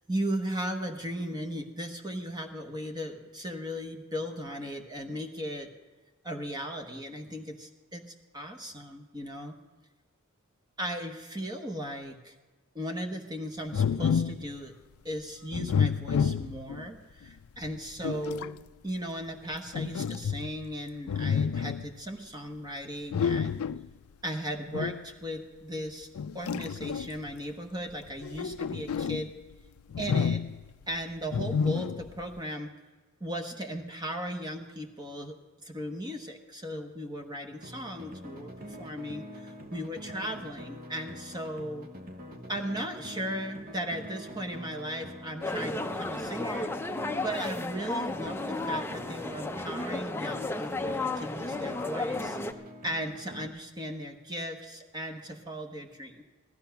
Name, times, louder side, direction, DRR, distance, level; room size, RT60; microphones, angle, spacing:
voice 1, 0.1-5.7 6.2-9.6 10.8-12.3 12.7-14.7 15.0-18.6 18.8-23.6 24.2-26.1 26.3-29.3 30.0-30.4 30.9-32.7 33.2-41.9 42.5-46.7 47.2-52.4 52.8-56.2, equal, 20° right, 4 dB, 1.0 m, -37 dB
sound 1, 13.7-14.5 15.5-16.9 17.6-18.6 19.7-20.7 21.1-21.9 23.1-23.9 24.7-25.1 26.2-27.3 28.1-29.3 29.9-30.7 31.3-32.2, left 6 dB, 85° left, 0.4 m, -29 dB
sound 2, 37.6-53.5, equal, 45° right, 1.2 m, -45 dB
sound 3, 45.4-52.5, left 2 dB, 10° left, 0.5 m, -33 dB
16.0 x 12.5 x 5.8 m, 1.3 s
head